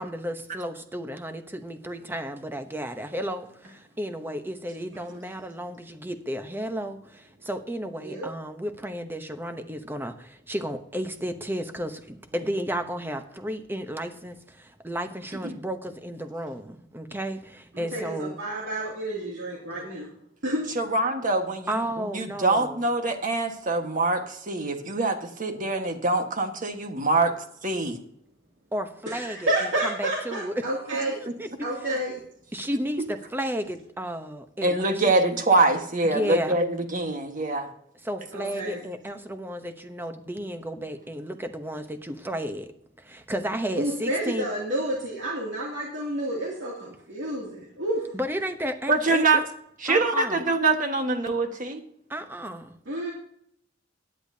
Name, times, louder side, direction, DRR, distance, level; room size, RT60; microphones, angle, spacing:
voice 1, 0.0-14.4 14.8-18.4 21.7-22.8 28.7-30.7 31.2-31.9 32.5-35.0 36.0-36.6 38.0-42.7 43.1-44.5 48.1-49.4 49.9-50.4 52.1-52.7, equal, 10° right, 8 dB, 0.9 m, -33 dB
voice 2, 17.8-20.1 20.4-20.6 29.1-31.2 31.6-32.1 38.3-38.8 43.7-48.0 52.9-53.1, right 1 dB, 75° right, -3 dB, 2.6 m, -30 dB
voice 3, 20.7-27.3 27.6-28.0 34.6-37.7 48.9-49.4 49.8-51.8, right 3 dB, 45° right, 5 dB, 1.5 m, -24 dB
16.5 x 10.0 x 2.8 m, 0.69 s
head